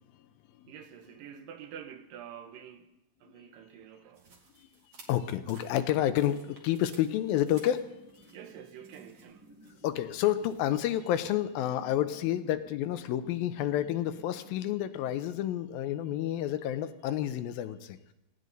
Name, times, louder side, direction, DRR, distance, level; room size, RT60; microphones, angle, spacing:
voice 1, 0.7-2.9 3.2-4.5 8.3-9.5, right 9 dB, 75° right, 2.5 m, -47 dB
sound 1, 4.1-11.3, right 3 dB, 45° right, 3.0 m, -59 dB
voice 2, 5.1-7.9 9.8-18.0, left 12 dB, 85° left, 2.6 m, -29 dB
sound 2, 7.2-16.4, right 1 dB, 10° right, 0.9 m, -56 dB
18.5 x 16.5 x 4.0 m
omnidirectional pair, 4.1 m